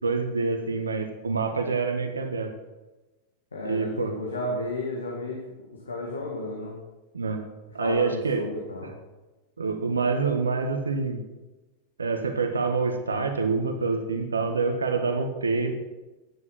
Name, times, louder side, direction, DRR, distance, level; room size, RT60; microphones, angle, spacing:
voice 1, 0.0-2.5 3.6-4.1 7.1-7.4 7.7-8.5 9.6-11.2 12.0-15.7, right 4 dB, 75° right, 6 dB, 1.4 m, -26 dB
voice 2, 3.5-5.4 5.9-6.8 7.8-8.9, left 2 dB, 75° left, -1 dB, 2.0 m, -32 dB
10.0 x 9.8 x 5.8 m, 1.1 s
figure-of-eight pair, 90°, 0 cm